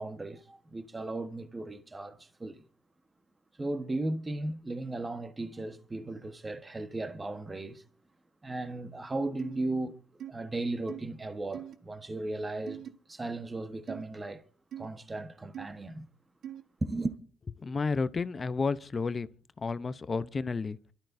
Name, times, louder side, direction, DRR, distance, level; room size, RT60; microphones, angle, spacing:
voice 1, 0.0-2.6 3.6-7.8 8.4-10.0 10.3-12.8 13.1-14.4 14.8-16.1 16.8-17.1, right 2 dB, 20° right, 1.3 m, -36 dB
sound 1, 9.4-9.6 10.2-10.3 10.9-11.0 11.5-11.8 12.7-12.9 13.9-14.0 14.7-14.9 15.5-15.7 16.4-16.6, right 10 dB, 70° right, 1.3 m, -41 dB
voice 2, 17.6-19.3 19.6-20.8, left 4 dB, 35° left, 0.7 m, -31 dB
28.0 x 13.0 x 2.7 m
cardioid pair, 90°, 0 cm